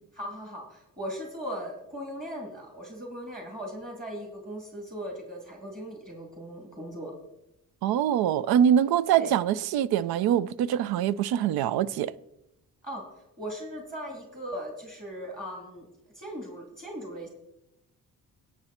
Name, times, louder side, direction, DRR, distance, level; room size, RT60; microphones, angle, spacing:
voice 1, 0.2-7.1 9.2-9.3 12.8-13.0 13.4-15.9 16.1-17.3, equal, 25° right, 2.9 m, -38 dB
voice 2, 7.8-12.1, right 9 dB, 90° right, 0.5 m, -24 dB
17.0 x 6.2 x 4.3 m
cardioid pair, 65°, 36 cm